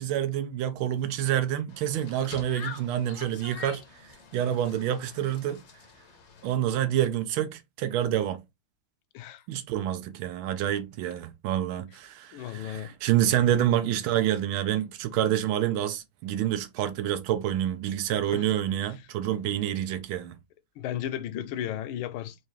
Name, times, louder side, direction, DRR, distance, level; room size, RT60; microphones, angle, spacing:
voice 1, 0.0-5.6 6.4-8.4 9.5-20.4, right 11 dB, 90° right, 1.4 m, -28 dB
sound 1, 1.7-6.5, left 4 dB, 60° left, 0.7 m, -45 dB
voice 2, 12.3-12.9 18.3-18.4 20.8-22.3, left 11 dB, 80° left, 1.4 m, -34 dB
4.6 x 2.8 x 2.9 m
omnidirectional pair, 2.2 m